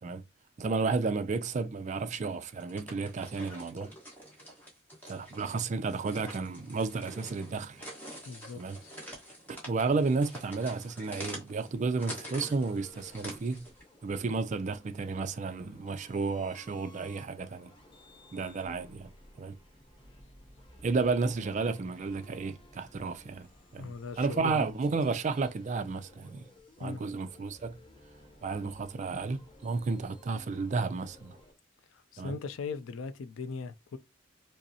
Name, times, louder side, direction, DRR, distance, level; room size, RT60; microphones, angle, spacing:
voice 1, 0.6-3.9 5.1-7.8 8.6-8.8 9.5-13.7 14.0-17.7 18.3-19.1 19.4-19.5 20.8-23.5 23.7-26.4 26.8-27.8 28.4-31.4 32.2-32.4, right 4 dB, 35° right, 0.3 m, -32 dB
sound 1, 2.5-13.8, equal, 10° left, 1.1 m, -47 dB
voice 2, 8.3-8.9 23.8-24.8 26.8-27.0 32.1-34.0, left 4 dB, 70° left, 0.4 m, -39 dB
sound 2, 12.2-31.5, left 1 dB, 25° left, 0.6 m, -56 dB
5.1 x 2.0 x 2.7 m
head